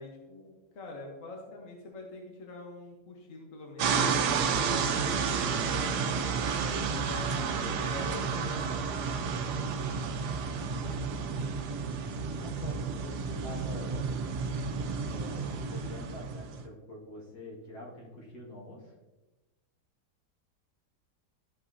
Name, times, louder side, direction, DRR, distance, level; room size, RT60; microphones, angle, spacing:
voice 1, 0.0-5.9 6.6-8.9, left 2 dB, 55° left, -1 dB, 1.4 m, -45 dB
sound 1, 3.8-16.6, right 5 dB, 80° right, 1.3 m, -31 dB
voice 2, 10.8-11.8 12.4-14.1 15.0-18.9, left 1 dB, 75° left, -3 dB, 2.5 m, -46 dB
13.0 x 5.4 x 2.7 m, 1.1 s
omnidirectional pair, 1.8 m